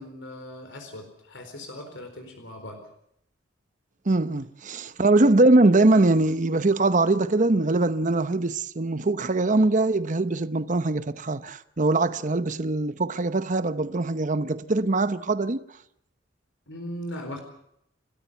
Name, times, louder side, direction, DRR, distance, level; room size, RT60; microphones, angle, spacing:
voice 1, 0.0-2.8 16.7-17.4, left 1 dB, 80° left, 4.4 m, -38 dB
voice 2, 4.1-15.6, right 2 dB, 45° right, 0.9 m, -22 dB
30.0 x 13.5 x 7.1 m
head